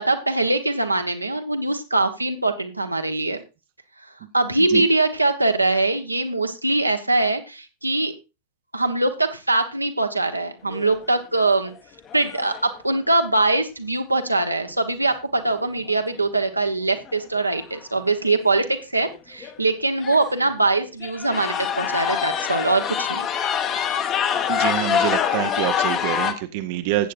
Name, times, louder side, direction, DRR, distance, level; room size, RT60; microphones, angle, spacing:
voice 1, 0.0-3.4 4.3-8.1 8.7-11.7 12.1-23.3, right 2 dB, 85° right, 6 dB, 1.1 m, -22 dB
sound 1, 10.7-11.1 11.7-11.8 12.1-12.7 15.9-16.0 17.1-17.2 17.4-17.8 18.3-18.4 19.1-19.2 19.4-19.6 20.0-20.4 21.0-26.3, left 8 dB, 30° left, 1.2 m, -25 dB
voice 2, 24.5-27.1, right 14 dB, 50° right, 10 dB, 0.7 m, -26 dB
14.5 x 8.5 x 2.6 m, 0.29 s
figure-of-eight pair, 90°, 0 cm